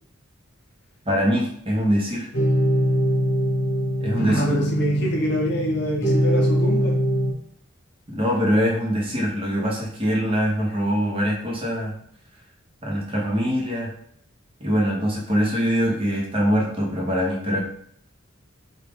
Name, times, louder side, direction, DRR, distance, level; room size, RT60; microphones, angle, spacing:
voice 1, 1.1-2.3 4.0-4.6 8.1-11.9 12.8-13.9 14.6-17.6, equal, 25° right, -2 dB, 0.8 m, -23 dB
sound 1, 2.3-7.3, equal, 80° left, 1.0 m, -22 dB
voice 2, 4.2-7.0, left 1 dB, 50° left, 0 dB, 0.7 m, -26 dB
3.5 x 2.4 x 3.4 m, 0.65 s
head